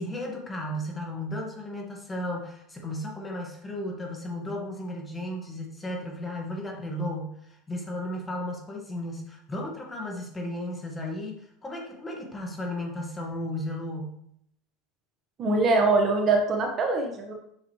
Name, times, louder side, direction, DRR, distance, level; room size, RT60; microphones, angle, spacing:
voice 1, 0.0-14.2, left 1 dB, 20° left, 0 dB, 2.0 m, -34 dB
voice 2, 15.4-17.3, right 3 dB, 40° right, 2 dB, 1.6 m, -23 dB
7.9 x 6.2 x 3.4 m, 0.71 s
supercardioid pair, 95°, 0 cm